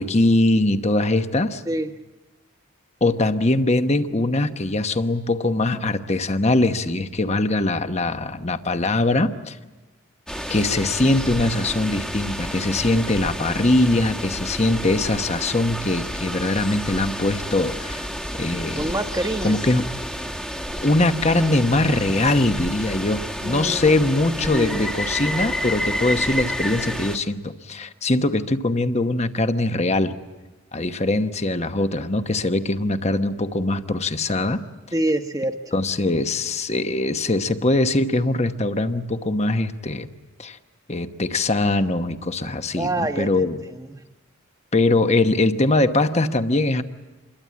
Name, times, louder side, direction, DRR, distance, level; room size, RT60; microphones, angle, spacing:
voice 1, 0.0-1.6 3.0-9.6 10.5-18.0 18.3-18.9 19.4-19.9 20.8-30.1 30.7-34.6 35.7-40.1 40.4-40.6 40.9-43.6 44.7-46.8, left 2 dB, 30° left, 9 dB, 1.0 m, -22 dB
sound 1, 10.3-27.2, equal, 5° left, 1.3 m, -30 dB
voice 2, 18.8-19.6 23.4-23.9 24.4-24.9 34.9-35.6 42.8-44.0, right 1 dB, 15° right, 6 dB, 1.2 m, -26 dB
27.5 x 22.0 x 8.5 m, 1.1 s
head